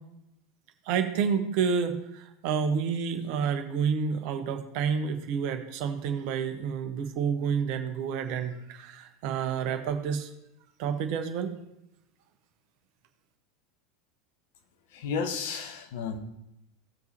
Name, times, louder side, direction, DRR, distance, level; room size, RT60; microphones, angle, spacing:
voice 1, 0.9-10.3 10.8-11.5, right 6 dB, 55° right, 7 dB, 1.1 m, -29 dB
voice 2, 14.9-16.2, left 5 dB, 60° left, 6 dB, 1.2 m, -32 dB
17.0 x 5.9 x 3.0 m, 0.87 s
figure-of-eight pair, 80°, 0 cm